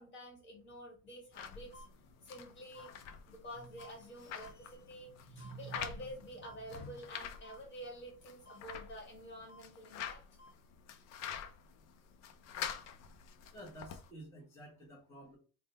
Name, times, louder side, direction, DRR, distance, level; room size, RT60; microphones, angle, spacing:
voice 1, 0.0-1.8 2.2-3.0 3.3-10.2, equal, 35° left, 1 dB, 1.5 m, -48 dB
sound 1, 1.3-14.1, left 8 dB, 55° left, 0.5 m, -47 dB
sound 2, 1.7-1.9 2.7-2.9 3.8-3.9 4.4-4.5 5.4-5.5 6.4-6.5 7.4-7.6 8.4-8.6 9.5-9.6 10.4-10.5, left 2 dB, 15° right, 1.2 m, -55 dB
voice 2, 13.5-15.4, right 1 dB, 10° left, -5 dB, 0.9 m, -51 dB
3.5 x 2.1 x 4.0 m, 0.36 s
cardioid pair, 160°, 32 cm